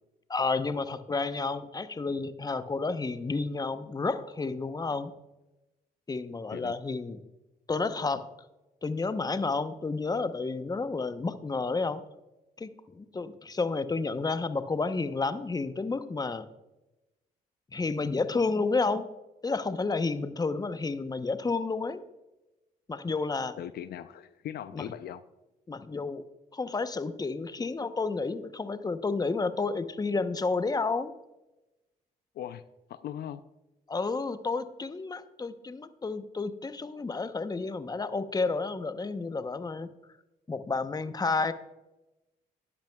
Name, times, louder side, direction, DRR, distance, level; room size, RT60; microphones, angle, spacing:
voice 1, 0.3-5.1 6.1-7.2 7.7-8.3 8.8-12.0 12.6-16.5 17.7-19.1 19.4-22.0 22.9-23.6 24.7-24.9 25.7-26.2 26.5-31.1 33.9-39.9 40.5-41.5, left 3 dB, 20° left, 11 dB, 0.8 m, -31 dB
voice 2, 23.6-25.2 32.3-32.6 32.9-33.4, left 10 dB, 65° left, 13 dB, 0.5 m, -39 dB
13.0 x 10.5 x 2.3 m, 0.99 s
supercardioid pair, 65°, 18 cm